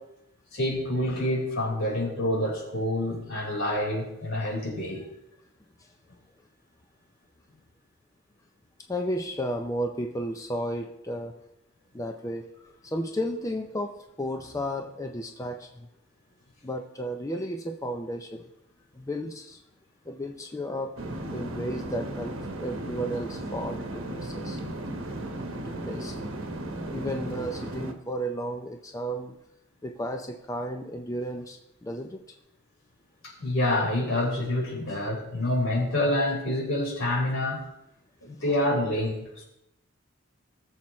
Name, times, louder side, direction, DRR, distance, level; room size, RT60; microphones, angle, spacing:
voice 1, 0.5-5.0 33.2-37.6 38.2-39.4, left 1 dB, 75° left, 4.7 m, -27 dB
voice 2, 8.9-11.4 11.9-15.9 16.6-18.5 18.9-19.6 20.1-21.0 21.3-24.6 25.6-26.2 26.6-29.4 29.8-32.2 38.5-38.6, equal, 15° left, 0.6 m, -33 dB
sound 1, 21.0-27.9, right 1 dB, 65° right, 1.3 m, -35 dB
19.0 x 7.3 x 3.2 m
head